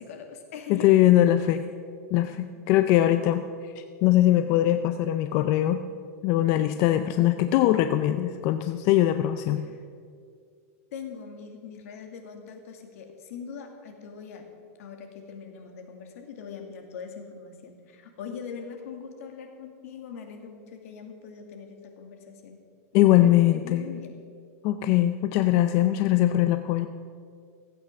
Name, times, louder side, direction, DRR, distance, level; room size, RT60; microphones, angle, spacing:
voice 1, 0.0-0.9 9.6-9.8 10.9-14.5 14.8-22.6 22.9-24.1, left 6 dB, 65° left, 4 dB, 2.2 m, -42 dB
voice 2, 0.7-1.6 2.1-3.4 4.0-5.8 6.2-9.7 22.9-23.8 24.6-26.9, left 13 dB, 35° left, 9 dB, 0.4 m, -21 dB
15.0 x 8.6 x 6.3 m, 2.1 s
supercardioid pair, 160°, 8 cm